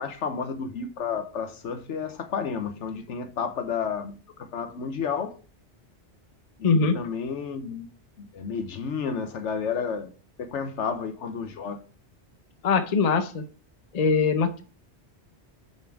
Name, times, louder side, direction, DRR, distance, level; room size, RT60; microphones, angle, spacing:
voice 1, 0.0-5.3 6.6-6.7 6.9-7.9 8.2-10.1 10.4-11.8, left 6 dB, 85° left, 1.2 m, -31 dB
voice 2, 6.6-7.0 12.6-13.4 13.9-14.6, left 5 dB, 40° left, 0.7 m, -22 dB
7.0 x 4.4 x 4.6 m
omnidirectional pair, 1.2 m